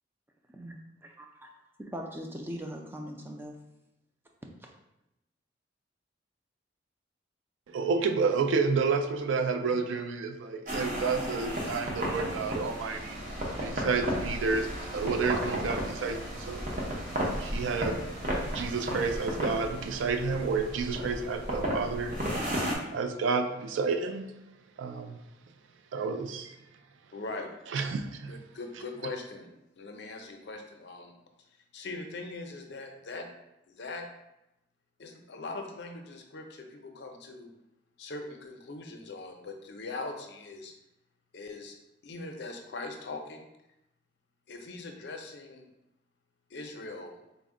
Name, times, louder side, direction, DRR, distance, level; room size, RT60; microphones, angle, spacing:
voice 1, 1.2-1.5 1.8-3.6 4.6-4.7, equal, 10° right, 1 dB, 0.3 m, -40 dB
voice 2, 7.7-13.2 13.6-16.7 17.4-22.3 22.7-24.4 24.8-25.2 25.9-26.6 27.7-28.4, right 4 dB, 85° right, 8 dB, 0.3 m, -30 dB
sound 1, 10.7-22.7, equal, 45° right, 0.7 m, -34 dB
voice 3, 27.1-27.5 28.3-29.5 29.8-31.1 31.7-33.3 33.7-34.0 35.0-37.5 38.0-40.7 41.3-41.7 42.0-43.5 44.5-45.7 46.5-47.1, left 3 dB, 65° left, 4 dB, 0.5 m, -41 dB
4.0 x 2.1 x 3.6 m, 0.90 s
head